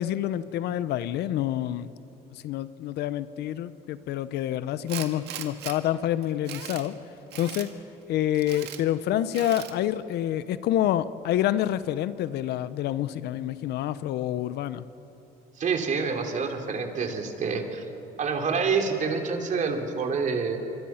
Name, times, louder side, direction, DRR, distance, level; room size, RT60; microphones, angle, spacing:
voice 1, 0.0-1.9 2.3-6.9 7.4-7.7 8.1-14.8, left 12 dB, 75° left, 15 dB, 0.9 m, -27 dB
Tools, 4.9-5.8 6.2-6.9 7.3-7.7 8.3-8.8 9.3-9.8, right 11 dB, 80° right, 1.8 m, -38 dB
voice 2, 15.6-17.8 18.2-20.6, right 5 dB, 45° right, 4 dB, 3.1 m, -27 dB
26.0 x 24.5 x 5.8 m, 3.0 s
cardioid pair, 110°, 17 cm